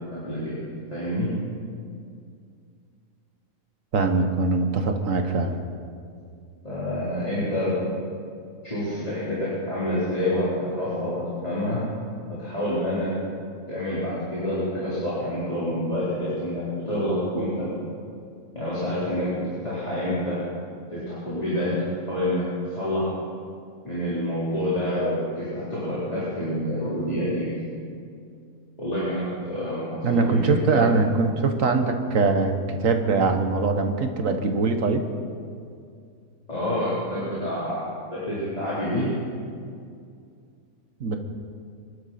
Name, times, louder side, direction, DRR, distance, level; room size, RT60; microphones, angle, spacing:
voice 1, 0.1-1.3 6.6-7.7 8.6-11.8 12.4-13.1 13.7-17.7 18.5-20.4 20.9-22.4 22.8-23.1 23.8-27.5 28.8-29.8 30.1-30.9 36.5-37.8 38.1-39.1, left 1 dB, 25° left, -11 dB, 4.2 m, -27 dB
voice 2, 3.9-5.6 30.0-35.0 41.0-41.2, right 3 dB, 70° right, 6 dB, 1.6 m, -22 dB
24.5 x 11.5 x 4.3 m, 2.3 s
omnidirectional pair, 1.5 m